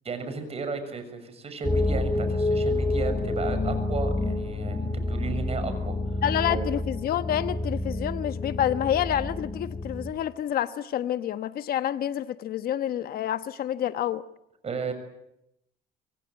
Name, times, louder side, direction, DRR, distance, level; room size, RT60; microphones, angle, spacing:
voice 1, 0.0-6.2 6.5-6.7 14.6-14.9, right 4 dB, 35° right, 6.8 m, -34 dB
sound 1, 1.6-10.1, left 2 dB, 15° left, 5.7 m, -28 dB
voice 2, 6.2-14.2, left 11 dB, 60° left, 1.1 m, -28 dB
26.5 x 23.0 x 9.1 m
cardioid pair, 110°, 17 cm